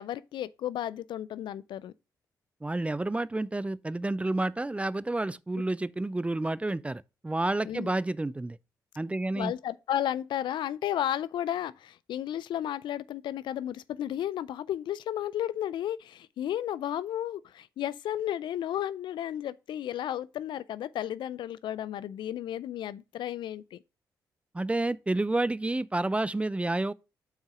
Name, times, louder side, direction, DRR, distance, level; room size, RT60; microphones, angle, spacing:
voice 1, 0.0-1.9 7.6-7.9 9.3-23.8, left 11 dB, 70° left, 0.3 m, -33 dB
voice 2, 2.6-8.6 9.0-9.5 24.5-26.9, right 2 dB, 15° right, 0.3 m, -30 dB
5.6 x 4.6 x 4.9 m
supercardioid pair, 45°, 8 cm